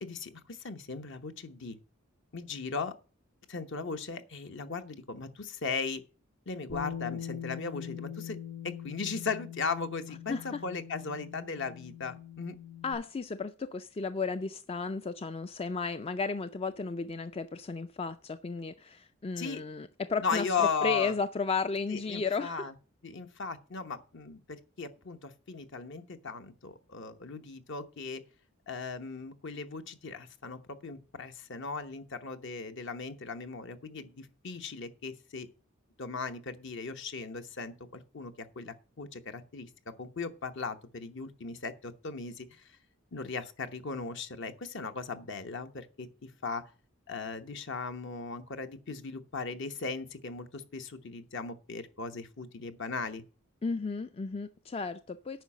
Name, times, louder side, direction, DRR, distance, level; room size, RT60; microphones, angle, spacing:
voice 1, 0.0-1.8 2.3-3.0 3.5-6.0 6.5-8.4 8.6-12.6 19.4-19.6 20.2-21.2 21.9-22.7 23.0-28.2 28.7-35.5 36.0-42.6 43.1-46.6 47.1-53.2, left 4 dB, 60° left, 1.0 m, -37 dB
Bass guitar, 6.7-12.9, left 9 dB, 85° left, 5.5 m, -42 dB
voice 2, 10.3-10.6 12.8-22.7 53.6-55.4, left 4 dB, 25° left, 0.4 m, -34 dB
9.2 x 5.7 x 7.3 m
head